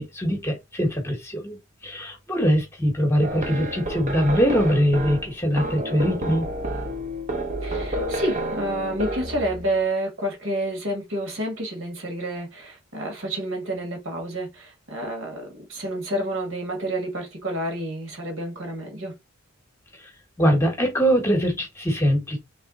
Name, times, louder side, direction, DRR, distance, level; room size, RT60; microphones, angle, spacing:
voice 1, 0.0-1.6 1.8-6.4 20.4-22.4, equal, 10° left, 1.1 m, -22 dB
sound 1, 3.2-9.8, right 1 dB, 35° right, 0.9 m, -30 dB
voice 2, 7.6-19.1, right 1 dB, 60° right, 1.8 m, -29 dB
3.6 x 3.3 x 4.0 m
head